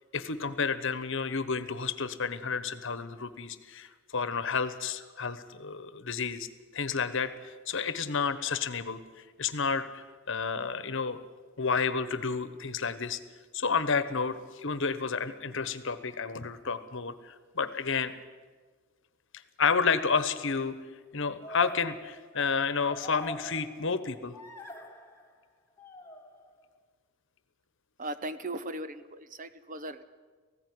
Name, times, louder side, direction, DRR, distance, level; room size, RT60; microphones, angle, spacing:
voice 1, 0.1-6.5 6.7-9.0 9.4-11.2 11.6-13.2 13.5-18.1 19.6-20.8 21.1-24.3, left 5 dB, 60° left, 13 dB, 1.2 m, -31 dB
sound 1, 20.3-20.6 21.4-24.1 24.3-25.3 25.8-26.7, left 1 dB, 10° left, 1.9 m, -45 dB
voice 2, 28.0-30.0, right 1 dB, 40° right, 12 dB, 0.9 m, -38 dB
18.5 x 15.5 x 9.7 m, 1.4 s
head